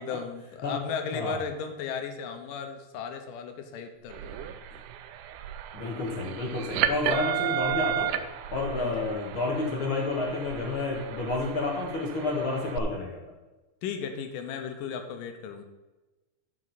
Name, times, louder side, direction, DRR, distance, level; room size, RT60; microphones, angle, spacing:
voice 1, 0.0-4.5 8.8-9.1 13.8-15.6, left 6 dB, 85° left, 6 dB, 2.6 m, -35 dB
sound 1, 4.1-12.8, right 11 dB, 80° right, 2.0 m, -33 dB
voice 2, 5.7-8.1 8.5-13.2, left 3 dB, 50° left, -1 dB, 1.9 m, -30 dB
12.0 x 6.3 x 4.1 m, 1.1 s
omnidirectional pair, 3.8 m